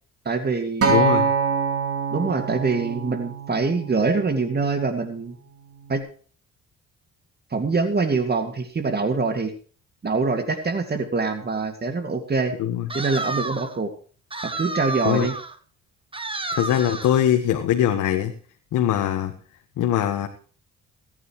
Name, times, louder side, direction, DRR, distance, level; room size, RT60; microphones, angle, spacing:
voice 1, 0.3-0.9 2.1-5.4 5.9-6.0 7.5-9.5 10.0-12.5 12.9-13.9 14.4-15.3, right 4 dB, 35° right, 7 dB, 2.3 m, -24 dB
Acoustic guitar, 0.8-5.1 5.9-6.0, right 6 dB, 50° right, 4.8 m, -25 dB
voice 2, 0.9-1.3 12.6-12.9 15.0-15.3 16.5-18.3 18.7-19.3 19.8-20.3, left 11 dB, 85° left, 5 dB, 1.5 m, -21 dB
sound 1, 12.9-13.8 14.3-15.5 16.1-17.2, right 3 dB, 15° right, 1.6 m, -31 dB
24.0 x 9.7 x 3.1 m, 0.42 s
cardioid pair, 90°, 30 cm